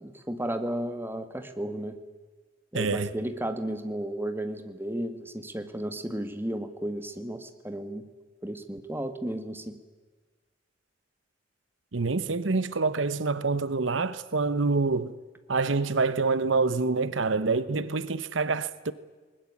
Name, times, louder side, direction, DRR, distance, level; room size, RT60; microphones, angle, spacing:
voice 1, 0.0-2.0 2.7-8.0 8.4-9.8, right 1 dB, 10° right, 1.8 m, -33 dB
voice 2, 2.7-3.1 11.9-15.1 15.5-18.9, right 4 dB, 85° right, 1.0 m, -26 dB
20.5 x 20.5 x 9.8 m
head